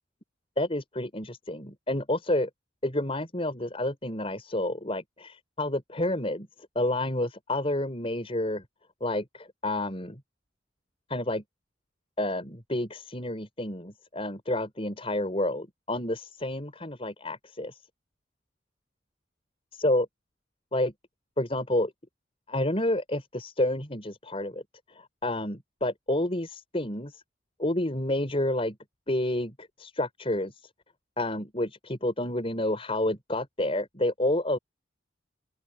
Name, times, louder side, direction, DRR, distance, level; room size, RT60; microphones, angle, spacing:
voice 1, 0.6-2.5 2.8-6.5 6.7-8.6 9.0-10.2 11.1-11.4 12.2-17.8 19.8-20.1 20.7-20.9 21.4-21.9 22.5-24.6 24.9-27.2 27.6-28.8 29.1-30.7 31.2-34.6, left 1 dB, 30° left, 5.1 m, -29 dB
open air
head